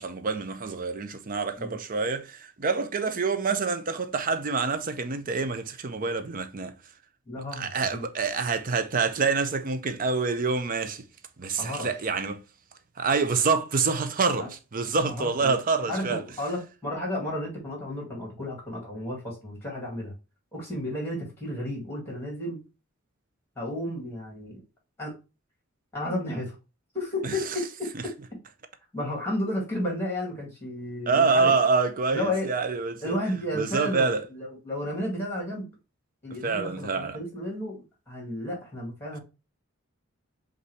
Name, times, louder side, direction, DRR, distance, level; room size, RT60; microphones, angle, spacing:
voice 1, 0.0-6.8 7.6-11.1 11.4-12.4 13.0-16.2 27.2-27.3 31.1-33.2 33.5-34.2 36.4-37.2, right 4 dB, 40° right, 0.6 m, -26 dB
voice 2, 7.3-8.0 11.6-11.9 14.4-14.5 15.1-15.6 15.9-20.1 20.5-22.6 23.6-24.6 25.0-25.1 25.9-26.6 26.9-28.1 28.9-31.5 32.1-32.5 33.0-35.7 36.2-39.2, left 1 dB, 10° left, 2.0 m, -32 dB
5.4 x 2.6 x 3.2 m
head